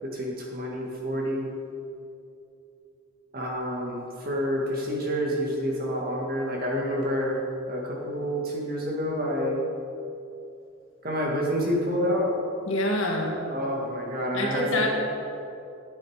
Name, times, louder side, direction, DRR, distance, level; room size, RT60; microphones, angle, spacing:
voice 1, 0.0-1.5 3.3-7.4 7.7-9.6 11.0-12.3 13.5-14.9, equal, 40° right, -2 dB, 1.9 m, -28 dB
voice 2, 12.7-13.3 14.3-14.9, left 1 dB, 65° left, -1 dB, 1.9 m, -26 dB
13.0 x 7.9 x 4.9 m, 2.7 s
head